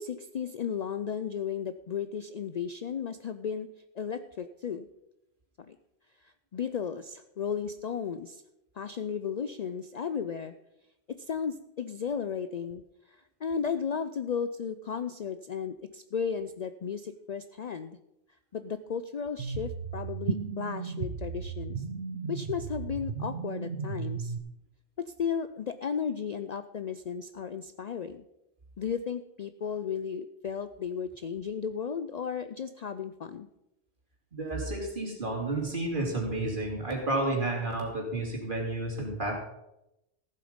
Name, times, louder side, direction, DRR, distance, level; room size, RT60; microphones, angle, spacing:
voice 1, 0.0-3.7 4.0-4.9 5.7-5.8 6.2-8.4 8.8-10.5 11.1-12.8 13.1-18.0 18.5-21.8 22.3-24.3 25.0-28.2 28.8-33.5, left 7 dB, 50° left, 11 dB, 0.5 m, -34 dB
sound 1, 19.4-24.4, right 5 dB, 75° right, 1.1 m, -35 dB
voice 2, 34.3-39.3, right 2 dB, 50° right, 0 dB, 2.9 m, -31 dB
14.5 x 7.6 x 5.2 m, 0.87 s
omnidirectional pair, 1.1 m